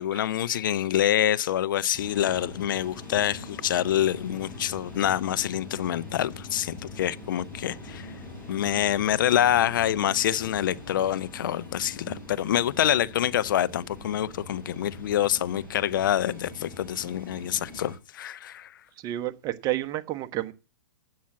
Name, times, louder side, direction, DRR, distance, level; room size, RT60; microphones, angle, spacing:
voice 1, 0.0-8.1 8.5-18.8, left 11 dB, 70° left, 0.5 m, -26 dB
sound 1, 1.9-18.0, left 2 dB, 20° left, 5.4 m, -43 dB
voice 2, 19.0-20.5, right 14 dB, 35° right, 1.1 m, -30 dB
8.5 x 7.2 x 7.4 m
hypercardioid pair, 120°, 11 cm